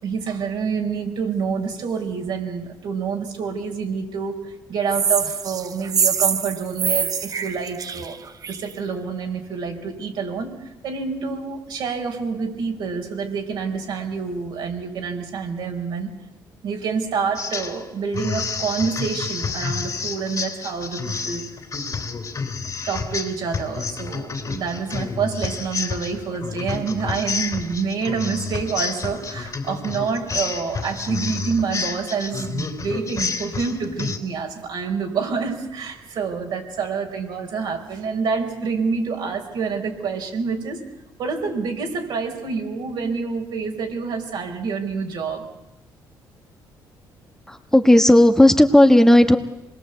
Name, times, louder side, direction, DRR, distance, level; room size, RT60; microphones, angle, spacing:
voice 1, 0.0-8.2 8.5-16.1 16.6-21.5 22.9-40.9 41.2-45.5, right 5 dB, 70° right, 2 dB, 4.8 m, -27 dB
sound 1, 4.9-8.7, right 6 dB, 50° right, 1.1 m, -24 dB
sound 2, 17.4-17.8 18.1-34.2, left 5 dB, 40° left, 3.3 m, -30 dB
voice 2, 47.5-49.4, left 1 dB, 5° left, 5 dB, 1.4 m, -13 dB
26.0 x 21.0 x 8.1 m, 0.96 s
cardioid pair, 85°, 8 cm